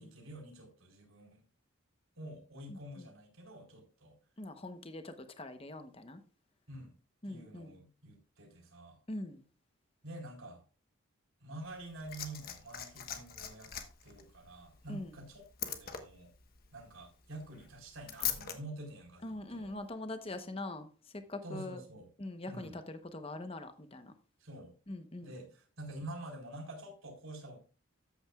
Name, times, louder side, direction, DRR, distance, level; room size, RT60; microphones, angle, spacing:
voice 1, 0.0-1.4 2.2-4.2 6.7-6.9 7.2-9.0 10.0-10.6 11.4-13.7 14.0-16.3 16.7-19.7 21.4-22.1 22.5-22.7 24.4-24.7 25.2-27.6, right 1 dB, 70° right, 4.2 m, -48 dB
voice 2, 2.7-3.1 4.4-6.2 7.2-7.8 9.1-9.4 14.9-15.2 19.2-21.8 22.2-24.1 24.9-25.3, left 2 dB, 25° left, 0.9 m, -43 dB
Liquid, 11.6-18.6 19.6-19.8, left 9 dB, 45° left, 1.2 m, -42 dB
13.5 x 8.8 x 2.4 m
head